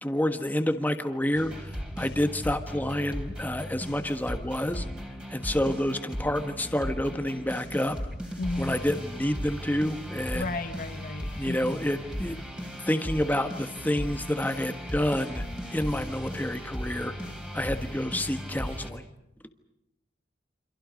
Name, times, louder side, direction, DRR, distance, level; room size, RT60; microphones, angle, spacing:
voice 1, 0.0-4.8 5.3-8.0 8.6-10.5 11.3-12.4 12.9-15.4 15.7-17.1 17.5-19.1, left 1 dB, 10° left, 7 dB, 1.4 m, -28 dB
sound 1, 1.3-18.9, equal, 5° right, 3.4 m, -37 dB
voice 2, 8.4-8.7 10.3-11.8, left 2 dB, 50° left, 8 dB, 1.0 m, -33 dB
28.5 x 26.5 x 5.2 m, 0.84 s
head